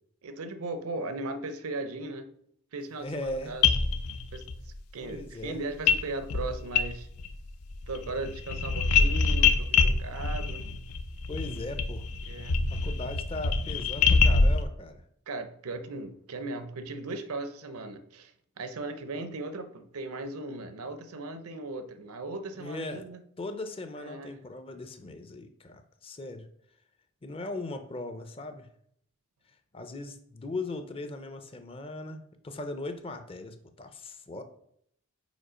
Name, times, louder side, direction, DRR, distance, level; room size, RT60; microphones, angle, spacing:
voice 1, 0.2-2.3 2.7-3.7 4.3-7.1 7.9-10.6 12.2-12.6 15.3-23.2 24.0-24.4, right 2 dB, 75° right, 9 dB, 0.6 m, -37 dB
voice 2, 3.0-3.5 5.0-5.6 11.3-12.0 12.7-15.0 22.6-23.1 23.4-26.5 27.2-28.7 29.7-34.4, left 2 dB, 25° left, 8 dB, 0.5 m, -38 dB
sound 1, 3.3-3.4 3.6-4.6 5.9-6.0 6.3-7.4 7.6-14.6, left 5 dB, 90° left, 0.5 m, -25 dB
5.1 x 4.2 x 5.0 m, 0.69 s
head